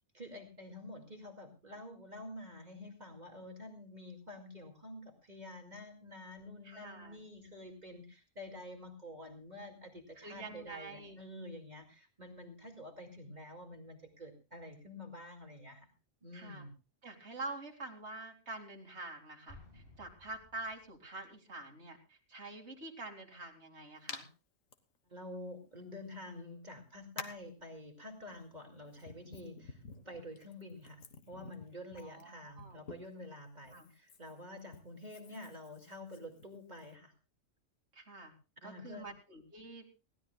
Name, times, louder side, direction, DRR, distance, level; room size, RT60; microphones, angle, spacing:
voice 1, 0.1-15.9 16.2-16.7 25.1-37.1 38.6-39.1, left 1 dB, 35° right, 3 dB, 2.4 m, -49 dB
voice 2, 6.6-7.2 10.2-11.2 16.3-16.6 17.0-24.3 31.9-32.8 33.7-33.9 37.9-38.3 38.6-39.9, right 2 dB, 55° right, 2 dB, 2.8 m, -46 dB
Explosion, 19.5-21.2, left 2 dB, 45° left, 8.4 m, -57 dB
Hands, 24.1-24.2 24.7-24.8 26.0-26.1 27.2-27.5 28.4-33.2 33.6-36.9, left 5 dB, 80° left, 1.7 m, -50 dB
21.0 x 16.0 x 2.3 m, 0.31 s
omnidirectional pair, 1.4 m